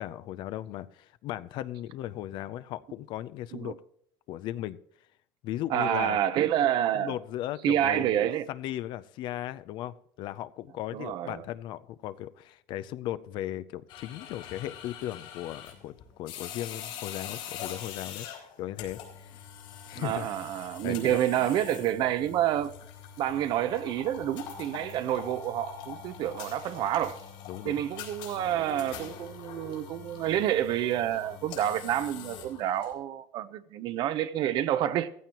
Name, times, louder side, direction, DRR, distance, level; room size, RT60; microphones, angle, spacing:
voice 1, 0.0-3.8 4.3-4.8 5.4-6.2 6.9-8.2 8.5-18.3 18.6-19.4 19.8-20.3 20.8-21.2 27.5-27.8, left 13 dB, 55° left, 0.5 m, -37 dB
voice 2, 5.7-7.1 7.6-8.5 10.9-11.4 20.0-22.7 23.2-27.2 27.6-35.1, right 11 dB, 50° right, 0.8 m, -28 dB
sound 1, 13.9-32.9, left 8 dB, 70° left, 3.7 m, -44 dB
15.5 x 15.0 x 3.0 m
cardioid pair, 145°, 10 cm